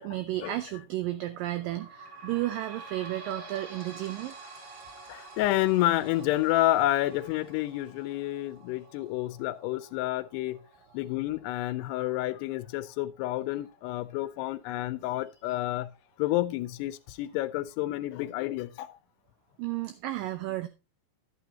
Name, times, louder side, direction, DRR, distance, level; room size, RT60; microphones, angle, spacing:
voice 1, 0.0-4.4 19.6-20.7, right 15 dB, 90° right, 1.9 m, -33 dB
sound 1, 1.6-14.7 15.3-15.4 15.7-15.8 16.6-16.7, right 3 dB, 40° right, 1.8 m, -49 dB
voice 2, 5.1-10.6 10.9-15.9 16.2-19.0, left 16 dB, 85° left, 2.7 m, -29 dB
12.0 x 8.7 x 2.8 m
omnidirectional pair, 4.7 m